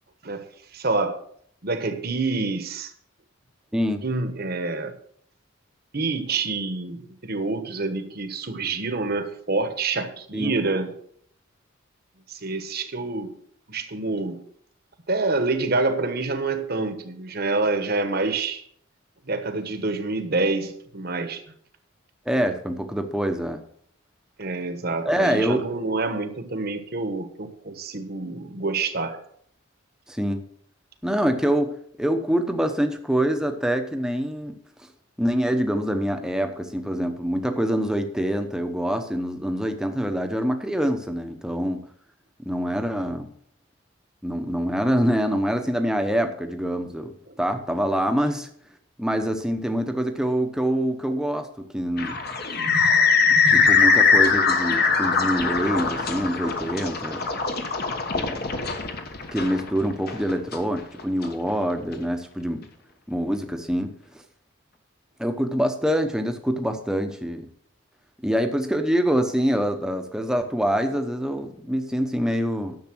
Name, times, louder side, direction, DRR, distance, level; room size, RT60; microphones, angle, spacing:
voice 1, 0.7-1.2 1.6-2.9 4.0-5.0 5.9-10.9 12.3-13.3 13.7-14.4 15.1-18.6 19.3-21.4 24.4-29.2 47.3-47.4, right 3 dB, 50° right, 1.2 m, -27 dB
voice 2, 3.7-4.0 10.3-10.5 22.3-23.6 25.0-25.6 30.1-30.4 31.0-34.5 35.2-41.8 42.4-43.3 44.2-47.1 47.4-48.5 49.0-52.2 53.5-57.3 58.2-58.4 59.3-62.6 63.1-63.9 65.2-67.5 68.2-72.8, equal, 5° right, 0.9 m, -25 dB
sound 1, 52.0-61.3, left 5 dB, 50° left, 1.3 m, -21 dB
10.5 x 7.2 x 6.2 m
head